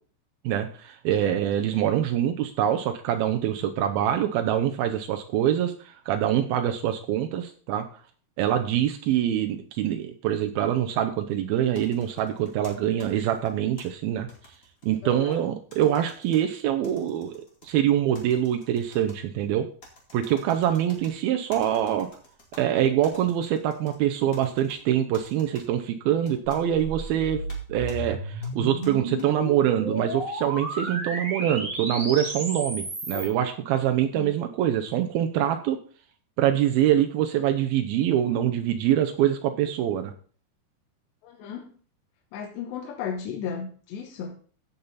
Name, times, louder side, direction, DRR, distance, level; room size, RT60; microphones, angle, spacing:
voice 1, 0.4-7.9 8.4-14.3 14.8-19.7 20.1-22.1 22.6-27.4 27.7-35.8 36.4-40.1, right 11 dB, 85° right, 6 dB, 2.1 m, -25 dB
sound 1, 11.7-13.8 14.3-15.4 15.7-16.4 16.8-17.7 18.1-19.2 19.8-21.1 21.5-22.6 23.0-24.0 24.3-24.8 25.1-25.6 26.2-26.6 27.5-27.6 27.9-28.0 28.4-29.3, left 1 dB, 30° left, 1.4 m, -50 dB
voice 2, 15.0-15.4 33.1-33.3 34.1-34.3 41.2-41.7 42.3-44.4, left 7 dB, 75° left, 2 dB, 3.1 m, -35 dB
sound 2, 26.6-33.3, right 1 dB, 35° right, 1.3 m, -33 dB
15.5 x 5.6 x 4.1 m, 0.43 s
omnidirectional pair, 5.3 m